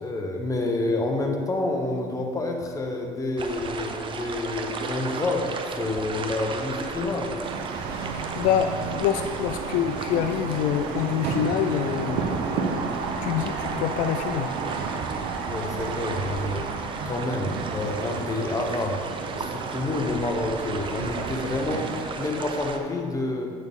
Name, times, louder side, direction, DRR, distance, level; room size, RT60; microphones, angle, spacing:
voice 1, 0.0-7.3 15.4-16.7 17.1-19.0 19.3-23.5, left 2 dB, 25° left, 2 dB, 1.0 m, -28 dB
sound 1, 3.4-22.8, right 4 dB, 35° right, 0.7 m, -36 dB
sound 2, 7.4-22.1, right 5 dB, 90° right, 0.8 m, -32 dB
voice 2, 8.4-12.8 13.2-14.5, left 9 dB, 80° left, 7 dB, 0.4 m, -26 dB
8.0 x 6.5 x 3.6 m, 2.2 s
cardioid pair, 105°, 14 cm